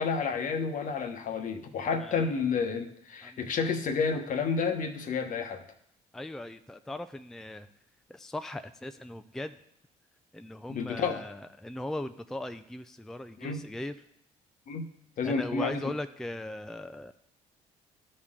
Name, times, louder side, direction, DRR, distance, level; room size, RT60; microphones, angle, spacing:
voice 1, 0.0-5.6 10.7-11.2 13.4-13.6 14.7-14.9 15.2-15.8, left 5 dB, 60° left, 6 dB, 1.0 m, -30 dB
voice 2, 6.1-7.7 8.1-9.6 10.3-14.0 15.2-17.1, left 1 dB, 5° left, 9 dB, 0.4 m, -38 dB
13.0 x 4.4 x 3.7 m, 0.73 s
supercardioid pair, 70°, 16 cm